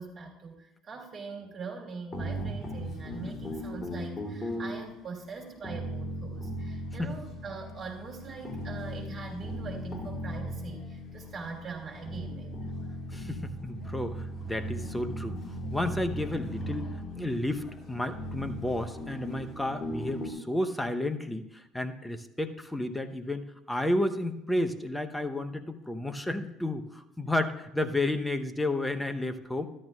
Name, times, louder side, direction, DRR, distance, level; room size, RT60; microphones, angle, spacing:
voice 1, 0.0-13.0, right 4 dB, 40° right, 0 dB, 3.2 m, -42 dB
sound 1, 2.1-20.3, equal, 35° left, 1.8 m, -38 dB
voice 2, 13.1-15.4 15.7-29.7, left 1 dB, 5° left, 8 dB, 0.9 m, -32 dB
13.0 x 11.0 x 2.4 m, 0.89 s
hypercardioid pair, 60°, 0 cm